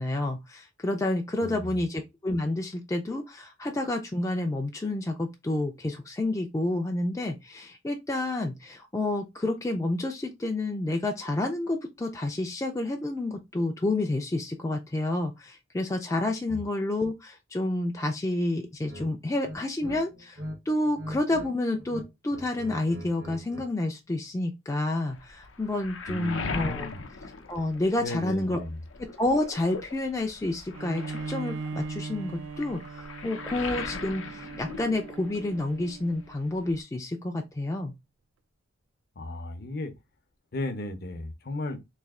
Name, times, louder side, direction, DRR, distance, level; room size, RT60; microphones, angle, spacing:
voice 1, 0.0-20.4 20.7-26.9 27.5-28.6 29.0-37.9, left 2 dB, 15° left, 0.3 m, -29 dB
voice 2, 1.4-1.7 16.5-16.6 26.1-27.0 28.0-28.8 39.2-39.9 40.5-41.8, left 2 dB, 50° left, 0.6 m, -35 dB
sound 1, 18.8-19.1 19.4-20.6 20.8-21.5 21.8-23.7, equal, 70° right, 1.1 m, -41 dB
Waves surf, 25.1-28.3 28.7-35.6 35.9-36.8, left 4 dB, 90° left, 0.6 m, -40 dB
Bowed string instrument, 30.7-36.4, right 4 dB, 85° right, 0.3 m, -39 dB
3.2 x 2.7 x 3.5 m
head